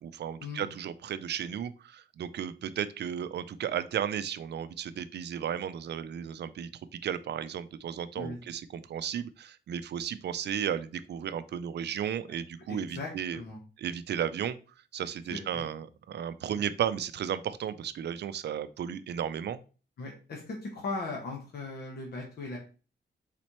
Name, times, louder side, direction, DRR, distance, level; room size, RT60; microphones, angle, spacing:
voice 1, 0.0-13.4 13.8-14.6 14.9-19.6, right 9 dB, 65° right, 13 dB, 0.4 m, -34 dB
voice 2, 12.7-13.6 15.3-15.7 16.5-16.6 20.0-22.6, left 3 dB, 60° left, -1 dB, 1.1 m, -38 dB
4.2 x 4.1 x 3.0 m, 0.35 s
wide cardioid pair, 150°, 19 cm